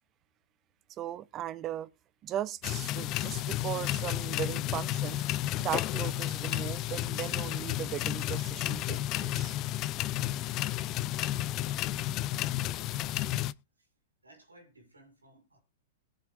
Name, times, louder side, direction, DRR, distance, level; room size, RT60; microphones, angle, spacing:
voice 1, 1.0-1.9 2.2-5.2 5.6-9.6, right 11 dB, 30° right, 0.7 m, -37 dB
sound 1, 2.6-13.5, left 14 dB, 35° left, 0.5 m, -32 dB
sound 2, 3.1-3.7 4.0-4.1 5.4-5.5 5.8-6.1 8.2-8.9 10.4-11.0 11.3-12.1, left 9 dB, 55° left, 1.9 m, -58 dB
voice 2, 12.7-13.4 13.8-13.9 14.2-15.6, right 1 dB, 90° right, 5.4 m, -58 dB
21.0 x 7.5 x 2.5 m
figure-of-eight pair, 105°, 0 cm